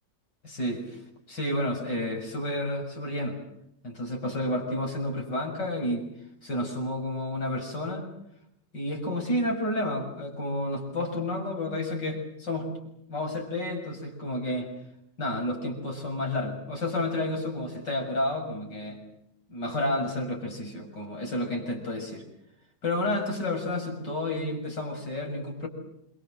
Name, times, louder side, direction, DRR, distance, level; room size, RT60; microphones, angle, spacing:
voice 1, 0.4-1.0 1.3-3.4 3.8-6.1 6.4-8.1 8.7-12.7 13.1-14.7 15.2-19.0 19.5-22.2 22.8-25.7, left 1 dB, 70° left, 3 dB, 7.4 m, -30 dB
29.0 x 25.5 x 7.8 m, 0.77 s
omnidirectional pair, 1.9 m